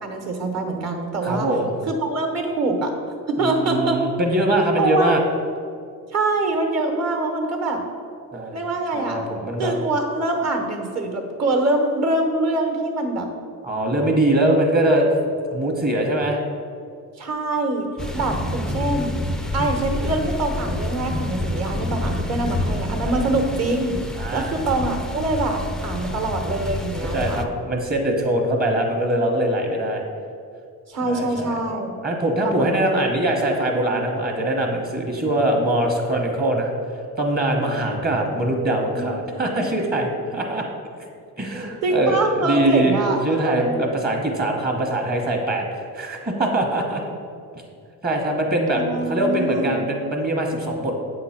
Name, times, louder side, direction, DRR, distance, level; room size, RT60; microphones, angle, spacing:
voice 1, 0.0-1.5 1.9-2.9 3.3-4.0 4.8-5.1 6.1-7.8 8.5-9.2 9.6-13.3 14.3-14.6 17.2-17.9 18.1-19.2 19.5-24.0 24.3-27.4 30.9-32.0 32.4-32.8 38.7-39.8 41.8-43.8 48.7-49.8, right 2 dB, 50° right, 3 dB, 1.3 m, -24 dB
voice 2, 1.2-1.7 3.4-5.2 8.3-8.6 8.9-9.7 13.6-15.1 15.5-16.4 23.0-23.2 24.2-24.5 27.1-30.0 31.0-31.6 32.0-36.7 37.2-40.7 41.4-47.0 48.0-48.8 49.1-50.9, right 1 dB, 25° right, 1 dB, 1.1 m, -22 dB
sound 1, 18.0-27.4, left 1 dB, ahead, 0.3 m, -28 dB
8.3 x 3.8 x 5.8 m, 2.4 s
cardioid pair, 120°, 35 cm